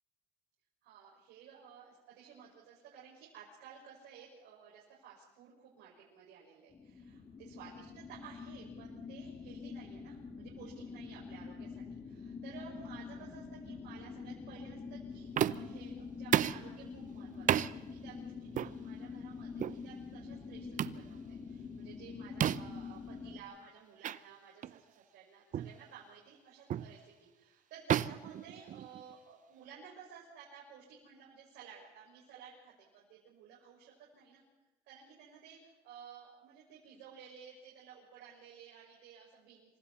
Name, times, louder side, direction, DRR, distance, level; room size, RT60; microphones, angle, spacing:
voice 1, 0.8-34.4 34.8-39.8, right 7 dB, 90° right, -4 dB, 5.7 m, -55 dB
sound 1, 6.7-23.4, left 5 dB, 35° left, 2.9 m, -46 dB
sound 2, 15.4-15.8 16.3-16.7 17.5-17.7 18.5-18.7 19.6-19.8 20.8-21.0 22.4-22.8 24.0-24.2 24.6-24.8 25.5-25.8 26.7-26.9 27.9-29.1, right 10 dB, 50° right, 0.7 m, -32 dB
27.0 x 25.0 x 4.2 m, 1.0 s
cardioid pair, 110°, 17 cm